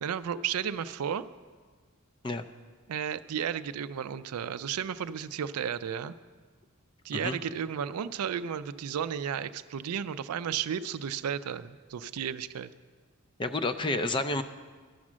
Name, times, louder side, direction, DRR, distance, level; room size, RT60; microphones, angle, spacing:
voice 1, 0.0-1.2 2.9-6.1 7.0-12.7, right 8 dB, 90° right, 13 dB, 0.4 m, -33 dB
voice 2, 13.4-14.4, left 2 dB, 20° left, 10 dB, 0.4 m, -30 dB
11.0 x 6.2 x 7.3 m, 1.5 s
head